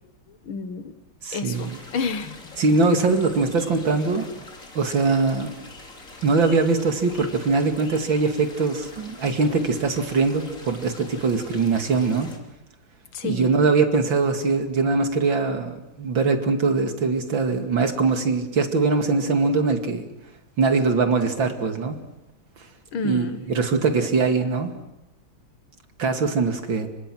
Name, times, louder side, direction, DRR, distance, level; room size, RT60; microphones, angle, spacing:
voice 1, 0.3-1.0 1.3-2.6 13.1-13.5 22.9-23.4, left 5 dB, 80° left, 11 dB, 2.3 m, -30 dB
voice 2, 1.2-1.8 2.6-4.4 4.7-5.6 6.2-12.3 13.2-20.1 20.6-22.0 23.0-24.7 26.0-26.9, right 4 dB, 70° right, 6 dB, 3.1 m, -22 dB
sound 1, 1.5-12.4, left 2 dB, 40° left, 3.9 m, -44 dB
30.0 x 26.0 x 6.3 m, 0.93 s
omnidirectional pair, 2.2 m